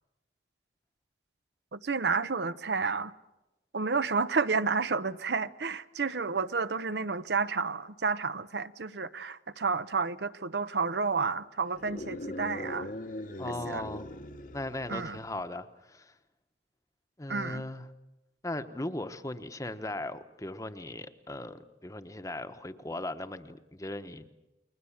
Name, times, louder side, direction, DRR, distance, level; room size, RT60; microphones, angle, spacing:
voice 1, 1.7-3.1 3.7-12.9 13.7-13.8 14.9-15.2 17.3-17.6, right 4 dB, 70° right, 0.8 m, -30 dB
sound 1, 11.7-15.4, left 1 dB, 45° left, 1.0 m, -40 dB
voice 2, 13.4-14.1 14.5-16.1 17.2-17.9 18.4-24.3, left 1 dB, 20° left, 1.0 m, -38 dB
30.0 x 21.5 x 7.3 m
head